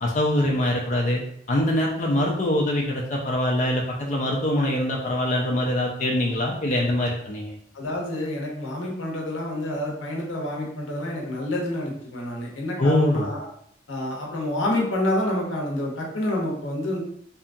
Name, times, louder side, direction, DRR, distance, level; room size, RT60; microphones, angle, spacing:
voice 1, 0.0-1.2 1.5-7.5 12.8-13.3, left 1 dB, 40° left, -2 dB, 0.4 m, -23 dB
voice 2, 7.7-13.5 13.9-17.0, left 1 dB, 90° left, -2 dB, 0.8 m, -28 dB
2.7 x 2.3 x 2.5 m, 0.69 s
head